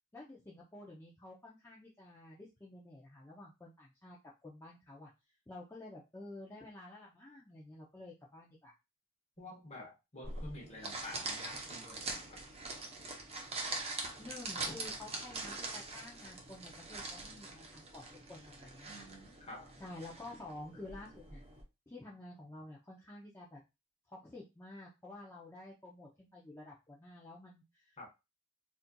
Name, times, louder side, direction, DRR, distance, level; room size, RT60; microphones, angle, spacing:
voice 1, 0.1-4.2 4.4-5.1 5.5-8.7 14.2-19.1 19.8-21.4 21.9-23.6 24.1-28.1, left 2 dB, 10° left, 0.5 m, -51 dB
voice 2, 9.4-12.4 18.9-19.7 28.0-28.1, left 1 dB, 30° left, 1.0 m, -49 dB
sound 1, 10.2-21.6, right 3 dB, 30° right, 0.6 m, -43 dB
4.2 x 2.5 x 2.2 m
head